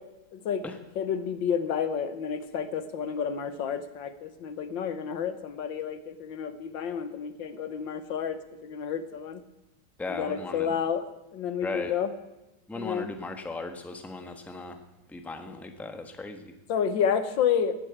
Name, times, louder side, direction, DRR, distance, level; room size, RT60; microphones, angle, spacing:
voice 1, 0.3-0.6 1.0-9.4 10.1-11.1 11.3-12.1 12.7-13.1 16.7-17.8, left 7 dB, 90° left, 11 dB, 1.9 m, -30 dB
voice 2, 10.0-10.8 11.6-11.9 12.7-14.8 15.1-16.5, left 3 dB, ahead, 6 dB, 1.1 m, -37 dB
18.5 x 9.0 x 8.0 m, 0.97 s
omnidirectional pair, 2.0 m